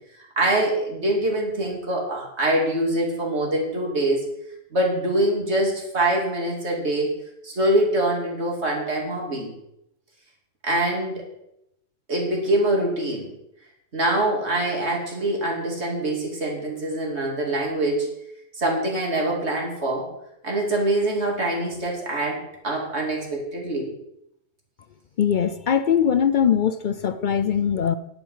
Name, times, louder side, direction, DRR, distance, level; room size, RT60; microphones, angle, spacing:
voice 1, 0.2-4.3 4.7-7.1 7.4-9.5 10.6-11.2 12.1-13.3 13.9-18.1 18.5-20.1 20.4-22.4 22.6-23.9, right 1 dB, 70° right, -2 dB, 3.1 m, -24 dB
voice 2, 25.2-28.0, left 8 dB, 55° left, 13 dB, 0.6 m, -21 dB
11.0 x 10.0 x 5.7 m, 0.81 s
omnidirectional pair, 1.2 m